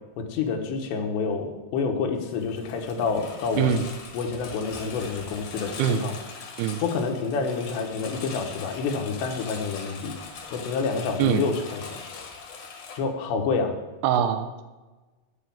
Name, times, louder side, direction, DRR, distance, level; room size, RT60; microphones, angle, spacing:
voice 1, 0.2-3.7 4.1-6.1 6.8-10.2 10.5-12.0 13.0-13.7, left 5 dB, 85° left, 4 dB, 3.5 m, -28 dB
Engine, 2.3-13.0, left 5 dB, 60° left, 2.5 m, -41 dB
voice 2, 3.6-3.9 5.8-6.0 6.6-6.8 11.2-11.5 14.0-14.6, right 8 dB, 80° right, 9 dB, 2.6 m, -23 dB
9.6 x 8.3 x 7.1 m, 1.2 s
omnidirectional pair, 4.9 m